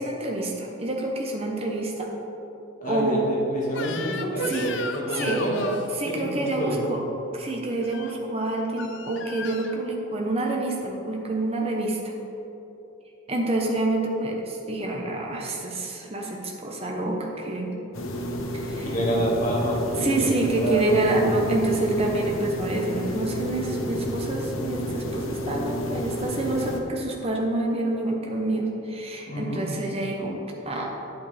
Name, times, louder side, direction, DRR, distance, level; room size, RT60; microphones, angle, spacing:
voice 1, 0.0-2.1 2.8-3.2 4.4-4.7 5.1-5.4 5.9-7.0 7.3-12.0 13.3-17.7 18.5-18.9 20.0-30.9, right 2 dB, 30° right, -1 dB, 1.0 m, -27 dB
voice 2, 2.8-5.7 6.0-6.8 18.8-21.0 29.3-29.6, right 1 dB, 40° left, -5 dB, 1.9 m, -28 dB
Crying sobbing / Screech, 3.7-5.9 7.8-8.1 8.8-9.8, left 5 dB, 60° left, 0.5 m, -36 dB
sound 1, 17.9-26.8, equal, 80° left, 0.9 m, -31 dB
9.3 x 8.0 x 3.4 m, 2.9 s
head